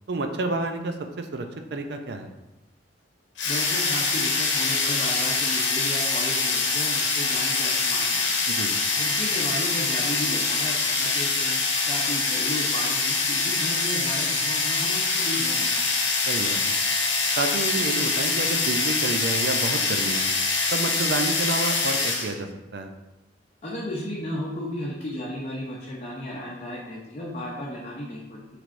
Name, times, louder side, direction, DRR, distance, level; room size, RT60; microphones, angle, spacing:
voice 1, 0.1-1.5 1.7-2.3 8.5-8.7 16.3-16.7 17.4-20.3 20.7-22.9, right 2 dB, 60° right, 6 dB, 0.5 m, -29 dB
sound 1, 3.4-22.3, left 4 dB, 90° left, 0.9 m, -24 dB
voice 2, 3.4-8.3 8.9-15.9 23.6-28.4, left 1 dB, 40° left, -5 dB, 0.7 m, -34 dB
6.0 x 3.3 x 2.6 m, 0.98 s
head